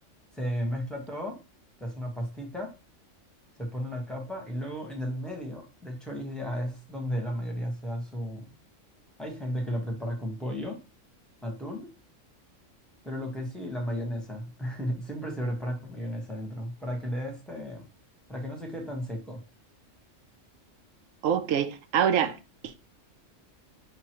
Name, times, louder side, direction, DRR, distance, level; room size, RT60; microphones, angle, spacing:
voice 1, 0.3-1.4 1.8-2.7 3.6-8.5 9.2-10.8 11.4-11.9 13.0-17.8 18.3-19.4, equal, ahead, 1.0 m, -34 dB
voice 2, 21.2-22.4 22.6-22.8, right 8 dB, 85° right, 1.0 m, -25 dB
5.6 x 3.0 x 2.9 m
omnidirectional pair, 1.3 m